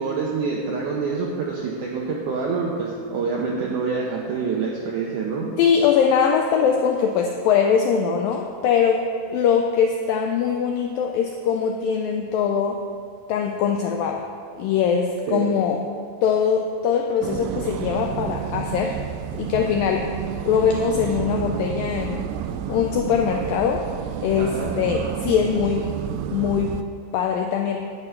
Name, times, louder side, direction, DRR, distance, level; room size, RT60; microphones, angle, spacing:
voice 1, 0.0-5.5 15.3-15.5 24.4-24.8, right 5 dB, 75° right, -2 dB, 1.9 m, -26 dB
voice 2, 5.6-9.0 9.3-12.8 13.3-14.3 14.6-15.8 16.2-19.0 19.4-20.1 20.4-22.3 22.7-23.8 24.2-25.9 26.3-26.8 27.1-27.9, left 7 dB, 85° left, 3 dB, 2.0 m, -22 dB
sound 1, 17.2-26.8, right 10 dB, 90° right, 2.6 m, -30 dB
10.5 x 8.0 x 5.6 m, 2.2 s
omnidirectional pair, 4.7 m